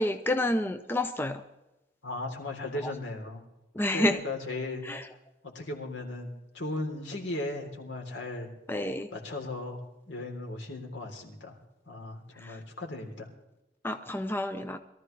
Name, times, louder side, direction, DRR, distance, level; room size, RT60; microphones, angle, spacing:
voice 1, 0.0-1.4 3.8-4.2 4.9-5.0 8.7-9.1 13.8-14.8, left 1 dB, 10° left, 7 dB, 0.6 m, -28 dB
voice 2, 2.0-3.4 3.9-4.8 5.4-8.5 9.1-11.5 11.8-13.3, left 2 dB, 70° left, 1 dB, 3.4 m, -36 dB
23.0 x 14.0 x 3.4 m, 0.96 s
head